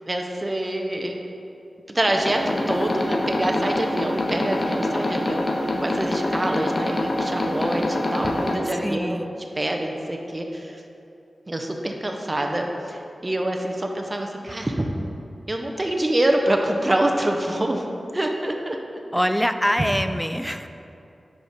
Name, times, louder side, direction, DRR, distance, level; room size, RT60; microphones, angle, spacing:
voice 1, 0.1-1.1 1.9-9.3 9.6-10.8 11.5-14.9 15.5-17.9 18.1-18.8, right 1 dB, 30° right, 2 dB, 0.6 m, -26 dB
sound 1, 2.1-8.6, left 1 dB, 45° left, 0.7 m, -25 dB
voice 2, 8.8-9.3 19.1-20.7, equal, 5° left, 8 dB, 0.3 m, -24 dB
5.0 x 4.7 x 5.1 m, 2.7 s
cardioid pair, 55°, 0 cm